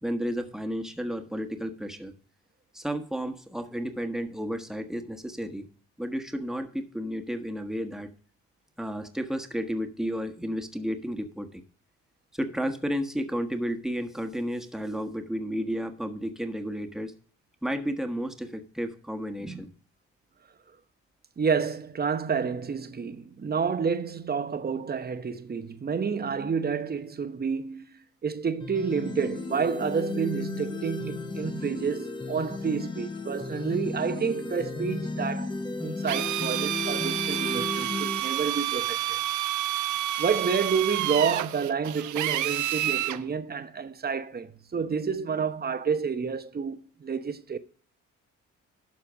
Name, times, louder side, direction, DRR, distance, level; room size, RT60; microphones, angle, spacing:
voice 1, 0.0-2.1 2.7-5.6 6.0-8.1 8.8-11.6 12.3-17.1 17.6-19.7, equal, ahead, 1.4 m, -32 dB
voice 2, 21.4-27.9 28.2-35.5 35.8-39.2 40.2-47.6, right 6 dB, 30° right, 0.9 m, -29 dB
sound 1, 28.6-38.2, left 3 dB, 15° left, 1.2 m, -34 dB
Drill, 36.1-43.2, right 13 dB, 75° right, 0.6 m, -29 dB
12.0 x 4.4 x 6.2 m
cardioid pair, 90°, 30 cm